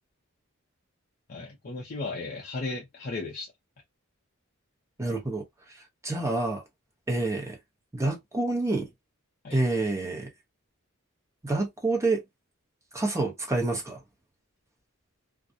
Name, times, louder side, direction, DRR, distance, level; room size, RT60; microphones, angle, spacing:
voice 1, 1.3-3.5 9.4-9.6, left 3 dB, 45° left, 0.6 m, -35 dB
voice 2, 5.0-5.4 6.0-6.6 7.1-7.6 7.9-8.9 9.5-10.3 11.4-12.2 12.9-14.0, right 2 dB, 15° right, 0.7 m, -27 dB
2.3 x 2.0 x 2.6 m
head